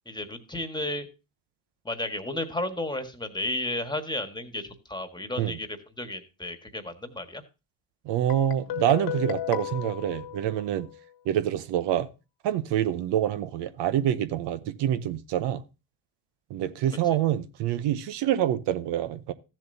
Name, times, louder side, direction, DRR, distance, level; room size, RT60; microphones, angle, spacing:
voice 1, 0.0-1.1 1.8-7.4, left 1 dB, 10° left, 1.5 m, -33 dB
voice 2, 8.1-10.9 11.3-12.1 12.4-15.6 16.5-19.3, right 11 dB, 70° right, 0.8 m, -26 dB
Guitar, 8.3-11.1, left 11 dB, 60° left, 1.5 m, -35 dB
14.0 x 7.4 x 2.7 m
supercardioid pair, 80°, 43 cm